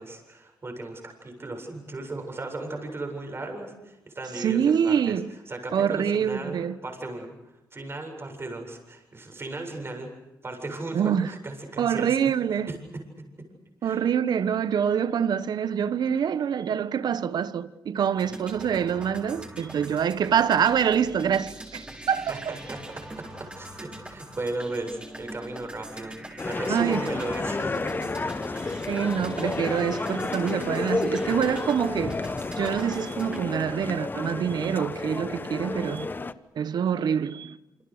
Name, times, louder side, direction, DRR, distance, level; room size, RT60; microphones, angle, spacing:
voice 1, 0.0-5.1 5.5-10.1 10.4-12.2 12.7-13.0 13.8-14.0 22.3-22.8 23.2-23.3 23.5-26.2 26.4-28.1, right 2 dB, 35° right, 7.8 m, -36 dB
voice 2, 4.4-5.3 5.7-6.8 10.9-11.3 11.8-12.7 13.8-22.5 26.7-27.1 28.6-32.2 32.6-36.1 36.5-37.6, right 8 dB, 70° right, 1.2 m, -25 dB
sound 1, 18.1-33.4, right 1 dB, 15° right, 6.6 m, -42 dB
sound 2, 26.4-36.3, left 3 dB, 25° left, 1.1 m, -31 dB
28.0 x 26.0 x 6.7 m
cardioid pair, 85°, 7 cm